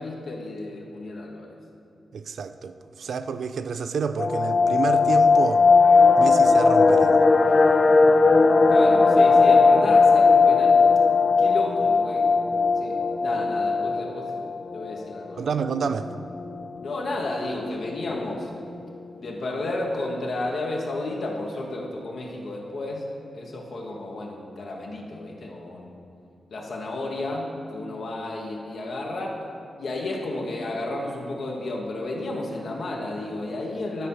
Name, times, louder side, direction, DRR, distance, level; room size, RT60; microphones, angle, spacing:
voice 1, 0.0-1.5 8.7-10.8 11.4-12.3 12.8-14.3 14.7-15.5 16.8-18.5 19.2-23.1 23.3-26.0 26.5-29.4 29.8-34.1, left 2 dB, 70° left, -1 dB, 1.2 m, -32 dB
voice 2, 2.1-5.6 6.2-7.2 15.4-16.1, right 5 dB, 75° right, 11 dB, 0.4 m, -29 dB
sound 1, 4.2-15.0 15.3-15.4 15.7-15.9 16.4-16.8 17.3-17.4 17.6-18.1 18.4-18.5, left 4 dB, 45° left, 0.3 m, -18 dB
11.0 x 4.2 x 5.5 m, 2.5 s
cardioid pair, 65°, 0 cm